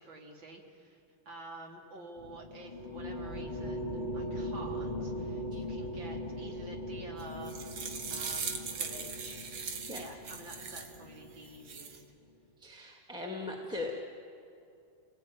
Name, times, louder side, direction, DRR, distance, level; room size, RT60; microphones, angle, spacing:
voice 1, 0.0-7.6 8.1-9.4 10.0-12.0, right 2 dB, 60° right, 1 dB, 3.6 m, -49 dB
sound 1, 2.2-11.9, equal, 20° left, 2.4 m, -40 dB
sound 2, 7.2-11.0 11.4-12.0, right 5 dB, 90° right, 2.6 m, -39 dB
voice 2, 12.6-13.9, left 2 dB, ahead, 0 dB, 1.9 m, -39 dB
29.5 x 19.0 x 9.3 m, 2.6 s
omnidirectional pair, 2.4 m